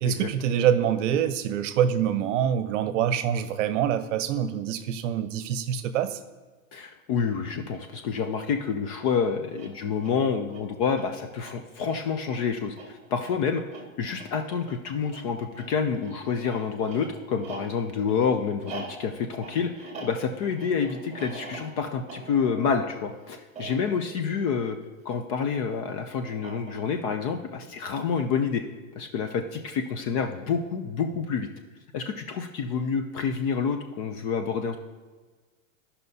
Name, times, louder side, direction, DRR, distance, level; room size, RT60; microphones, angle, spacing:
voice 1, 0.0-6.2, right 9 dB, 60° right, 11 dB, 0.8 m, -25 dB
voice 2, 6.7-13.6 14.0-24.8 25.1-28.6 29.0-31.5 31.9-34.8, left 6 dB, 30° left, 6 dB, 0.4 m, -28 dB
sound 1, 9.4-25.2 26.2-27.1, right 3 dB, 15° right, 1.7 m, -45 dB
14.5 x 5.6 x 2.7 m, 1.3 s
hypercardioid pair, 135°, 42 cm